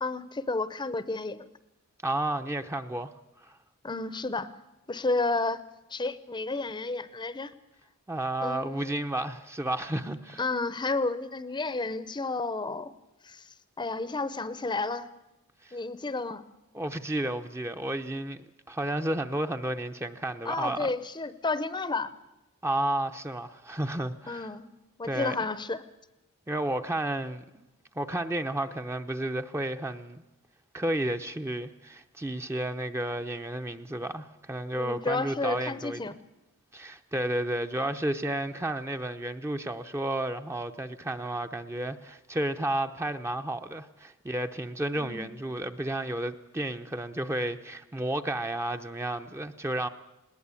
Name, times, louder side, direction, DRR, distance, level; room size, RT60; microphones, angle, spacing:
voice 1, 0.0-1.5 3.8-4.5 4.9-5.6 5.9-7.5 8.4-9.0 10.4-12.9 13.2-13.5 13.8-15.1 15.7-16.4 20.4-22.1 24.3-24.7 25.0-25.8 34.7-36.1 45.0-45.4, left 3 dB, 20° left, 0.7 m, -31 dB
voice 2, 2.0-3.1 3.4-3.6 8.1-10.4 15.6-15.8 16.7-18.4 18.7-20.9 22.6-24.5 25.0-25.5 26.5-27.7 27.9-30.2 30.7-36.1 36.7-49.9, right 1 dB, 10° right, 0.7 m, -32 dB
20.0 x 18.5 x 8.4 m
head